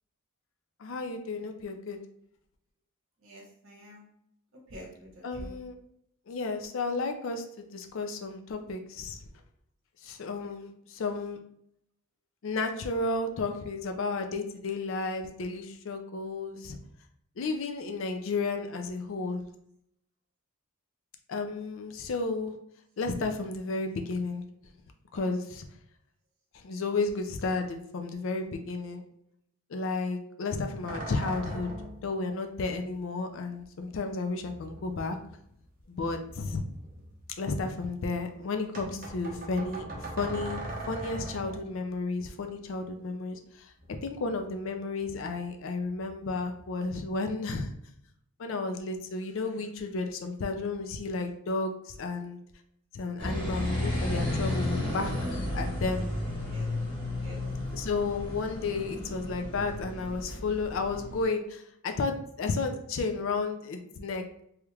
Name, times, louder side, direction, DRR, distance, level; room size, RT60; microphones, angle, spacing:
voice 1, 0.8-2.0 5.2-5.7 6.3-9.2 10.0-11.4 12.4-16.8 17.4-19.4 21.3-22.5 23.0-24.4 25.1-25.7 26.5-29.0 29.7-31.7 32.0-35.2 35.9-36.6 37.4-40.6 40.9-43.7 44.0-47.7 48.4-52.4 52.9-56.1 57.7-64.4, left 3 dB, 65° left, 6 dB, 0.4 m, -32 dB
voice 2, 3.2-4.0 4.7-5.5 56.5-56.7 57.2-57.4, equal, 65° right, -2 dB, 1.0 m, -46 dB
sound 1, 30.8-32.1 33.6-33.7 34.4-35.6 36.0-37.5 38.7-41.7 43.8-44.7 45.0-45.5 45.9-46.9, right 1 dB, 40° right, 0.7 m, -41 dB
sound 2, 53.2-61.2, left 1 dB, 20° left, 1.2 m, -33 dB
3.1 x 2.3 x 3.2 m, 0.73 s
head